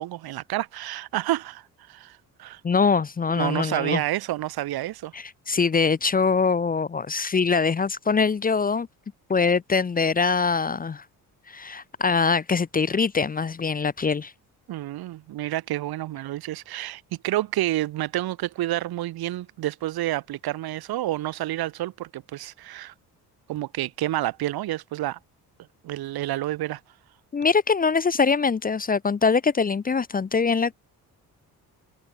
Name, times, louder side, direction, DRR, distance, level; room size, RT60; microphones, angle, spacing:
voice 1, 0.0-2.6 3.3-5.1 14.7-22.9 23.5-25.2 25.8-26.8, right 15 dB, 75° right, 1.1 m, -29 dB
voice 2, 2.6-4.0 5.1-8.9 9.3-11.0 11.5-14.3 27.3-30.7, left 5 dB, 25° left, 0.6 m, -23 dB
cardioid pair, 85°, 38 cm